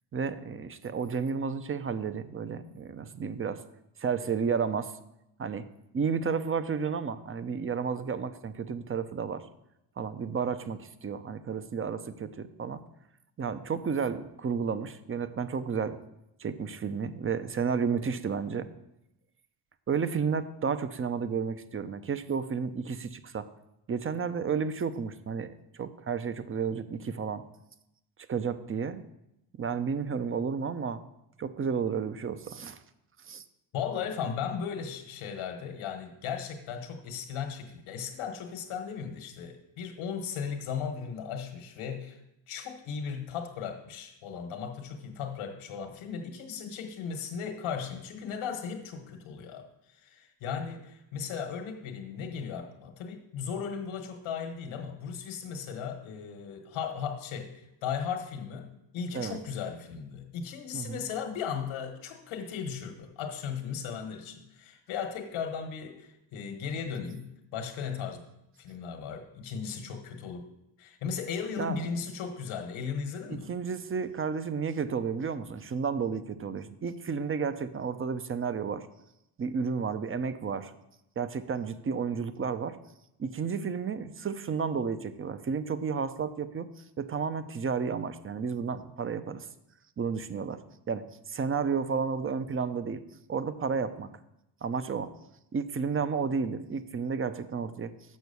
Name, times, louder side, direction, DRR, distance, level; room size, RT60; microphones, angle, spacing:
voice 1, 0.1-3.6 4.0-4.9 5.4-5.7 5.9-9.4 10.0-12.8 13.4-16.0 16.4-18.7 19.9-23.5 23.9-27.4 28.3-29.0 29.6-31.0 31.4-32.8 33.3-33.4 59.1-59.4 60.7-61.0 71.6-71.8 73.3-78.9 79.4-80.7 81.2-82.8 83.2-86.7 87.0-89.5 90.0-90.6 90.9-93.0 93.3-94.1 94.6-95.1 95.5-97.9, right 6 dB, 25° right, 12 dB, 0.6 m, -32 dB
voice 2, 33.7-42.2 42.5-58.7 58.9-68.2 68.6-70.5 70.8-73.5, left 7 dB, 80° left, 5 dB, 1.4 m, -36 dB
6.3 x 6.1 x 6.8 m, 0.86 s
cardioid pair, 85°, 48 cm